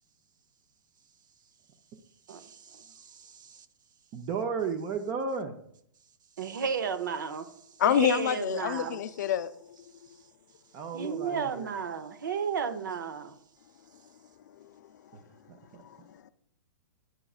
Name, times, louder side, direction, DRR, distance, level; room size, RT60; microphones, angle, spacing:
voice 1, 2.3-3.7 6.4-7.5 7.8-9.0 10.9-13.4, right 6 dB, 80° right, 0.7 m, -33 dB
voice 2, 4.1-5.5 10.7-11.7 15.1-15.6, right 5 dB, 30° right, 0.6 m, -34 dB
voice 3, 7.8-9.5 14.6-14.7 15.8-16.3, left 10 dB, 65° left, 0.4 m, -28 dB
9.0 x 4.8 x 2.4 m
hypercardioid pair, 140°, 10 cm